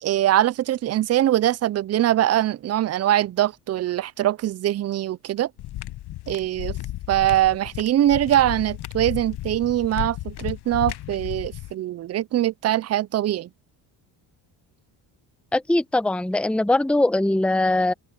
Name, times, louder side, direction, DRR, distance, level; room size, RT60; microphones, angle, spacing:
voice 1, 0.0-5.5 6.3-6.8 7.1-13.5, right 13 dB, 35° right, 0.5 m, -22 dB
sound 1, 5.6-11.7, left 15 dB, 55° left, 0.9 m, -34 dB
voice 2, 15.5-17.9, left 2 dB, ahead, 1.1 m, -21 dB
cardioid pair, 95°, 47 cm